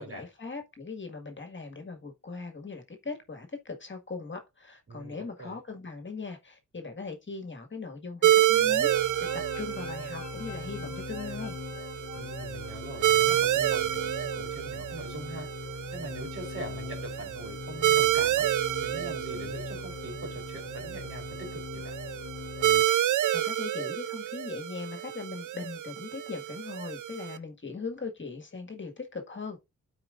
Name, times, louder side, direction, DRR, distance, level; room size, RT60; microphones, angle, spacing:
voice 1, 0.0-8.9 9.3-11.6 23.3-29.6, left 4 dB, 40° left, 1.7 m, -39 dB
voice 2, 4.9-5.6 12.1-15.5 15.9-18.5 18.8-21.9, right 2 dB, 45° right, 3.7 m, -42 dB
sound 1, 8.2-27.4, right 12 dB, 80° right, 0.5 m, -29 dB
sound 2, 8.5-22.8, left 6 dB, 65° left, 1.2 m, -41 dB
12.5 x 4.7 x 2.5 m
cardioid pair, 55°, 30 cm